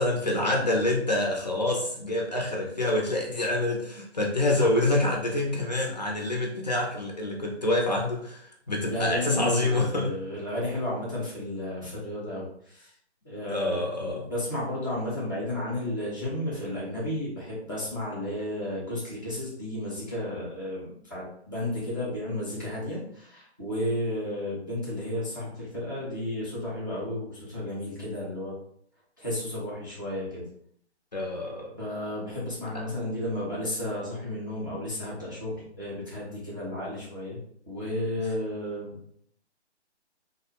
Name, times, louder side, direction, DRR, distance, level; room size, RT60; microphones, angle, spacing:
voice 1, 0.0-10.1 13.5-14.3 31.1-31.7 32.7-32.8, left 2 dB, 40° left, 0 dB, 0.4 m, -27 dB
voice 2, 8.9-12.9 13.2-28.5 29.2-30.4 31.8-39.2, left 1 dB, 20° right, -8 dB, 0.4 m, -33 dB
2.5 x 2.0 x 2.8 m, 0.66 s
hypercardioid pair, 160°, 34 cm